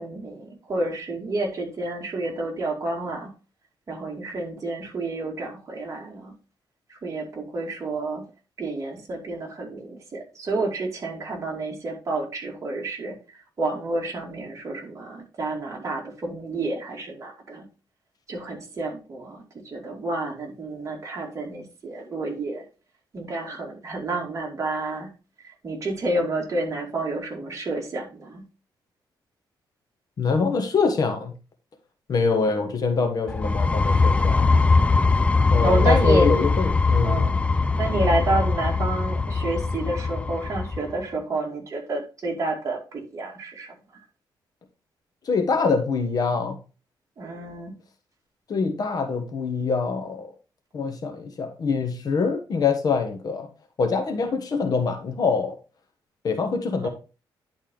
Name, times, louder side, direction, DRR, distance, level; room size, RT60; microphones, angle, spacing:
voice 1, 0.0-3.3 3.9-6.3 6.9-8.3 8.6-13.2 13.6-17.7 18.3-22.6 23.1-25.1 25.4-28.4 35.6-36.3 37.0-37.4 37.7-43.7 47.2-47.8 56.8-56.9, right 2 dB, 40° right, 0 dB, 2.4 m, -29 dB
voice 2, 30.2-31.3 32.1-34.5 35.5-37.3 45.3-46.6 48.5-50.3 50.7-53.5 53.8-55.5 56.2-56.9, left 4 dB, 50° left, 5 dB, 1.3 m, -24 dB
sound 1, 33.3-40.9, left 4 dB, 15° left, 0.4 m, -21 dB
10.5 x 4.3 x 3.8 m, 0.33 s
cardioid pair, 130°, 8 cm